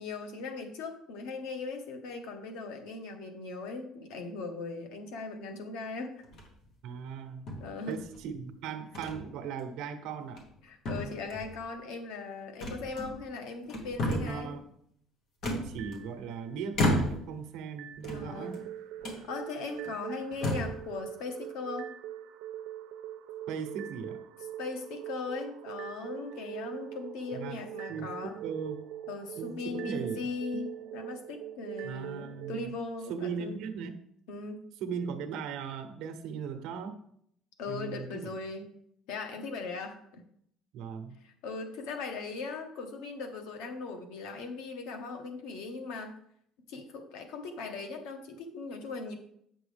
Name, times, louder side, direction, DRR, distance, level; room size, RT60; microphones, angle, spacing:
voice 1, 0.0-6.1 7.6-8.0 10.6-14.5 18.1-18.6 19.3-21.9 24.6-28.3 29.1-33.5 34.3-34.6 37.6-38.7 39.1-40.2 41.2-46.2 46.7-49.1, left 4 dB, 90° left, 5 dB, 1.3 m, -39 dB
sound 1, 6.2-6.7 7.5-8.2 8.9-9.2 9.6-9.7 10.2-10.6 10.8-11.6 12.6-13.3 13.7-14.4 15.4-16.2 16.7-17.4 17.9-18.6 19.0-19.2 19.8-19.9 20.3-20.8, left 1 dB, 45° left, 1.4 m, -33 dB
voice 2, 6.8-7.4 7.9-10.4 14.0-14.7 15.4-18.6 23.5-24.2 27.3-27.6 27.9-28.9 29.3-30.3 31.8-32.7 33.1-34.0 34.8-37.0 37.7-38.3 40.7-41.2, right 6 dB, 60° right, 7 dB, 0.9 m, -38 dB
sound 2, 15.8-16.7 17.8-32.7, right 11 dB, 85° right, 0.6 m, -43 dB
8.0 x 6.0 x 3.4 m, 0.69 s
cardioid pair, 180°, 0 cm